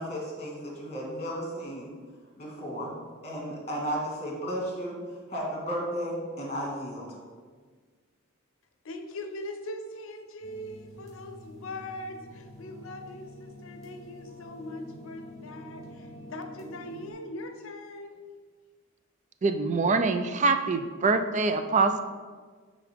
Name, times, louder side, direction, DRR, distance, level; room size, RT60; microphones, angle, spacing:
voice 1, 0.0-1.9 2.4-2.9 3.2-5.0 5.3-7.1, equal, 30° left, -3 dB, 1.8 m, -34 dB
voice 2, 8.8-18.2, left 1 dB, 65° left, 6 dB, 0.7 m, -41 dB
sound 1, 10.4-17.1, equal, 15° right, 1.6 m, -47 dB
voice 3, 19.4-22.0, right 3 dB, 35° right, 8 dB, 0.4 m, -24 dB
9.4 x 3.8 x 3.6 m, 1.5 s
head